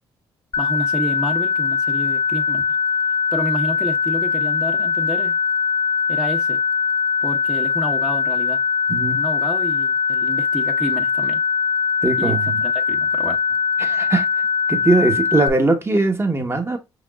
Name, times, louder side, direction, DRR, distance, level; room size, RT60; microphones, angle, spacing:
sound 1, 0.5-15.5, left 6 dB, 50° left, 0.6 m, -21 dB
voice 1, 0.6-2.6 3.3-5.4 6.1-6.6 7.2-8.6 9.1-11.4 12.2-13.4, equal, 5° right, 0.8 m, -30 dB
voice 2, 8.9-9.2 12.0-12.6 13.8-14.3 14.7-16.8, right 3 dB, 25° right, 1.1 m, -20 dB
5.2 x 3.5 x 2.3 m
supercardioid pair, 60°, 10 cm